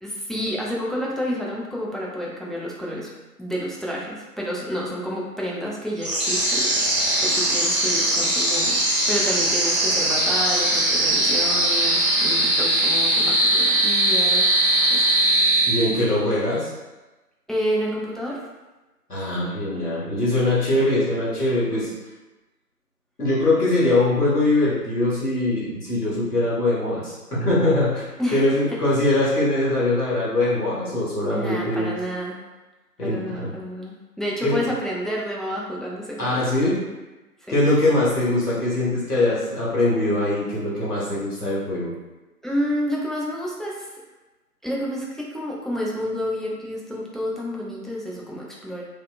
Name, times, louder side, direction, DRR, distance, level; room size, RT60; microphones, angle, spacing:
voice 1, 0.0-3.1 3.4-6.7 7.2-14.6 14.9-15.0 17.5-18.4 28.2-28.8 31.3-32.4 33.0-36.7 37.4-37.6 42.4-43.9 44.6-48.8, equal, ahead, -5 dB, 0.3 m, -29 dB
sound 1, 6.0-16.2, right 1 dB, 80° right, 1.1 m, -20 dB
voice 2, 15.7-16.7 19.1-21.9 23.2-28.0 28.3-31.9 33.0-33.5 34.4-34.6 36.2-36.8 37.5-41.9, left 2 dB, 70° left, -8 dB, 1.0 m, -22 dB
2.8 x 2.1 x 2.3 m, 1.1 s
figure-of-eight pair, 180°, 47 cm